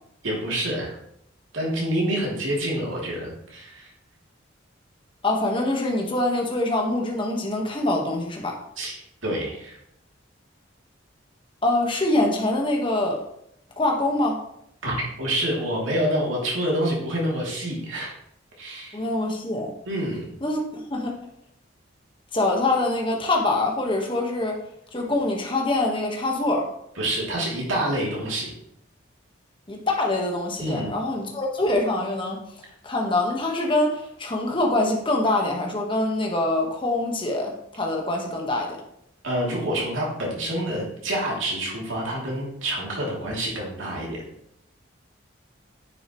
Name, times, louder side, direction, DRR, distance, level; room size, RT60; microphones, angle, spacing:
voice 1, 0.2-0.9 1.5-3.9 8.8-9.8 14.8-18.1 18.6-19.0 19.8-20.3 27.0-28.5 30.6-30.9 39.2-44.2, right 1 dB, 90° right, -3 dB, 2.7 m, -27 dB
voice 2, 5.2-8.6 11.6-13.2 13.8-14.4 18.9-19.7 20.4-21.1 22.3-24.6 24.9-26.7 29.7-32.4 32.8-38.8, left 2 dB, 25° left, 1 dB, 1.2 m, -24 dB
9.3 x 6.5 x 3.0 m, 0.75 s
head